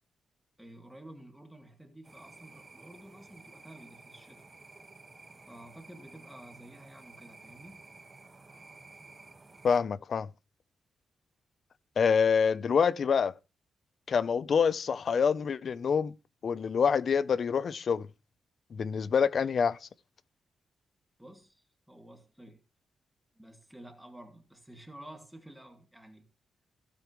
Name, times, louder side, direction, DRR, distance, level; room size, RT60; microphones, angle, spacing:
voice 1, 0.6-4.4 5.5-7.8 21.2-22.6 23.4-26.3, right 1 dB, 5° right, 2.1 m, -51 dB
sound 1, 2.0-9.8, right 3 dB, 20° right, 1.5 m, -53 dB
voice 2, 9.6-10.3 12.0-13.3 14.1-16.1 16.4-18.1 18.7-19.9, left 6 dB, 45° left, 0.6 m, -26 dB
16.0 x 8.7 x 3.1 m
wide cardioid pair, 170°, 0 cm